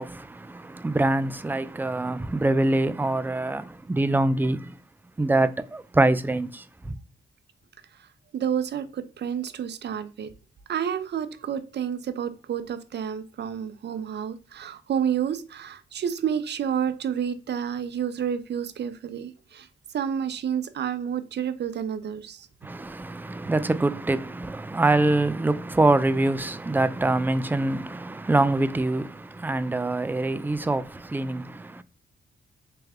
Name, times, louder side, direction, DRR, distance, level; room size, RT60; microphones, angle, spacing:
voice 1, 0.0-4.8 5.2-7.0 22.6-31.8, right 2 dB, 10° right, 0.4 m, -25 dB
voice 2, 8.3-10.3 10.7-19.7 19.9-22.5, right 8 dB, 60° right, 0.6 m, -30 dB
3.4 x 3.2 x 3.5 m
cardioid pair, 70°, 20 cm